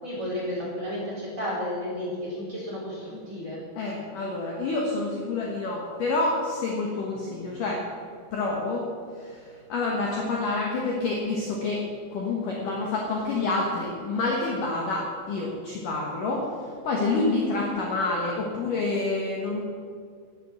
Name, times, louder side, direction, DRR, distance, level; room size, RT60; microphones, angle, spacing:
voice 1, 0.0-3.6, left 1 dB, 20° right, -7 dB, 4.2 m, -32 dB
voice 2, 3.8-7.8 8.3-8.9 9.1-16.5 16.8-19.6, left 3 dB, 60° left, -2 dB, 2.4 m, -28 dB
11.5 x 10.5 x 7.5 m, 2.2 s
omnidirectional pair, 5.3 m